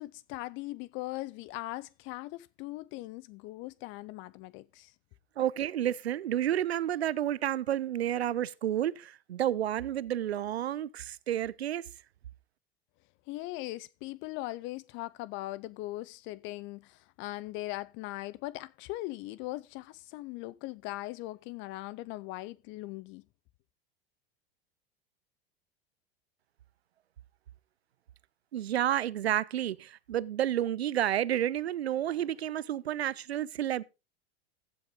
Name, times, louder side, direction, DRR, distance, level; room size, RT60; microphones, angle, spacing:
voice 1, 0.0-4.9 13.3-23.2, left 18 dB, 40° left, 0.4 m, -40 dB
voice 2, 5.4-11.8 28.5-33.8, right 11 dB, 85° right, 0.5 m, -30 dB
15.0 x 6.9 x 3.6 m
hypercardioid pair, 85°, 31 cm